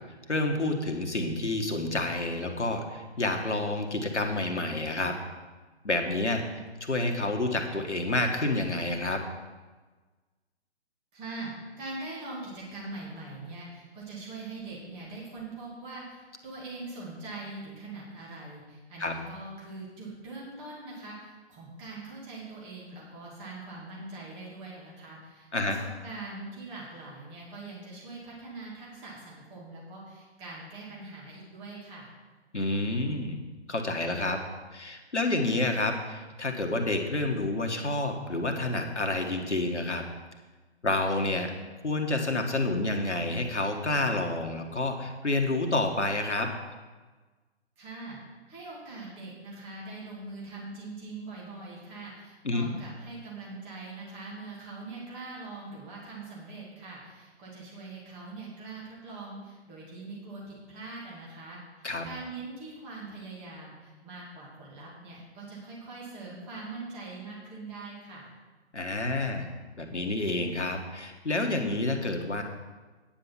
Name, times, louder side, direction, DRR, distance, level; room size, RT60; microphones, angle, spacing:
voice 1, 0.3-5.2 5.8-6.5 6.9-9.2 19.0-19.1 25.5-25.8 32.5-33.4 33.7-34.4 34.7-40.0 40.8-41.5 41.8-46.5 52.4-52.7 61.8-62.1 68.7-69.5 69.8-72.4, left 2 dB, 80° left, 4 dB, 1.6 m, -29 dB
voice 2, 11.1-11.5 11.8-32.1 47.8-48.2 48.5-68.3, right 3 dB, 15° right, -5 dB, 2.4 m, -42 dB
9.7 x 7.4 x 5.7 m, 1.3 s
figure-of-eight pair, 140°, 34 cm